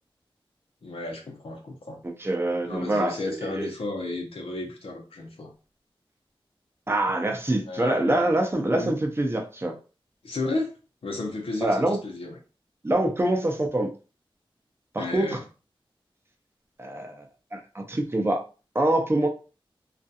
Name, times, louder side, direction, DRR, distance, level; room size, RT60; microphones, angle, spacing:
voice 1, 0.8-2.0 2.6-5.5 7.7-8.4 8.7-9.0 10.2-10.8 11.0-12.4 15.0-15.4, left 2 dB, 90° left, 0 dB, 0.7 m, -33 dB
voice 2, 2.0-3.7 6.9-9.8 11.6-12.0 12.8-13.9 14.9-15.4 16.8-17.3 17.5-18.4 18.7-19.3, right 1 dB, 25° right, 2 dB, 0.5 m, -25 dB
2.4 x 2.3 x 2.7 m, 0.34 s
wide cardioid pair, 90°, 9 cm